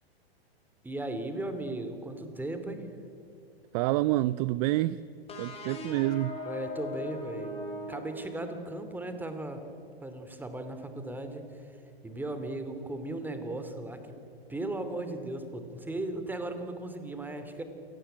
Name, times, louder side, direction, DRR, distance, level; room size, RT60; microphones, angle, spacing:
voice 1, 0.8-2.8 6.4-7.5 7.9-9.6 10.0-11.8 12.0-14.0 14.5-17.6, right 2 dB, 5° right, 7 dB, 2.9 m, -36 dB
voice 2, 3.7-5.0 5.4-6.4, right 17 dB, 40° right, 17 dB, 0.6 m, -27 dB
sound 1, 5.3-8.8, left 2 dB, 20° left, 5.8 m, -40 dB
28.0 x 18.5 x 9.1 m, 2.7 s
hypercardioid pair, 120°, 31 cm